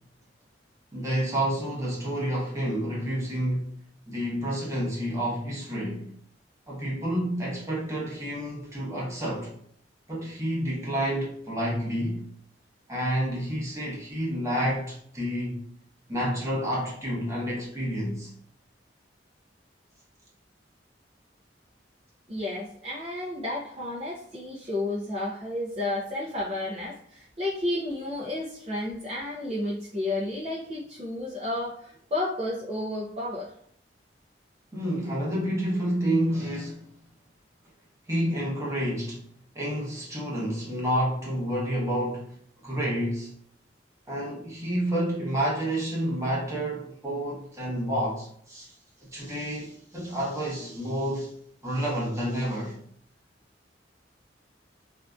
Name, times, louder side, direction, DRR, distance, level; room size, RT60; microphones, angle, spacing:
voice 1, 0.9-6.1 6.7-9.5 10.1-12.3 12.9-15.6 16.1-18.3 34.7-36.9 38.1-39.2 39.5-42.4 42.6-43.3 44.1-48.7 49.0-51.3 51.6-52.8, equal, 15° right, 0.8 m, -29 dB
voice 2, 22.3-33.5, left 1 dB, 35° right, 0.5 m, -32 dB
2.5 x 2.3 x 2.3 m
head